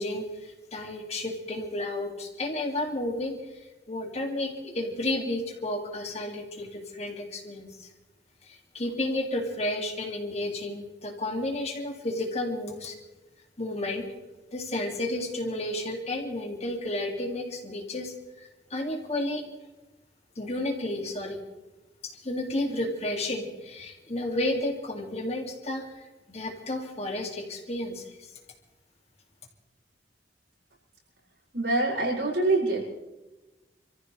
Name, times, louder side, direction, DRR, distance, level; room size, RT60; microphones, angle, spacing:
voice 1, 0.0-3.6 3.9-7.9 8.4-13.0 13.6-14.1 14.5-19.4 20.4-21.4 22.0-28.3, left 1 dB, 35° left, 2 dB, 2.3 m, -32 dB
voice 2, 31.5-32.8, right 2 dB, 70° right, -4 dB, 6.4 m, -25 dB
27.5 x 14.5 x 3.3 m, 1.1 s
head